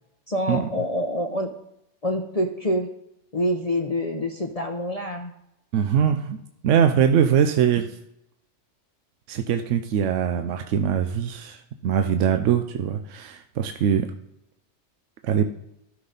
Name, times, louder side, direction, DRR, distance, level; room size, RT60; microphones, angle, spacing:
voice 1, 0.3-1.5 2.0-2.9 3.3-5.3, equal, 35° left, 3 dB, 0.8 m, -26 dB
voice 2, 5.7-6.4 6.6-8.0 9.3-14.1 15.2-15.5, right 8 dB, 75° right, 7 dB, 1.0 m, -22 dB
12.5 x 5.7 x 3.9 m, 0.81 s
omnidirectional pair, 1.3 m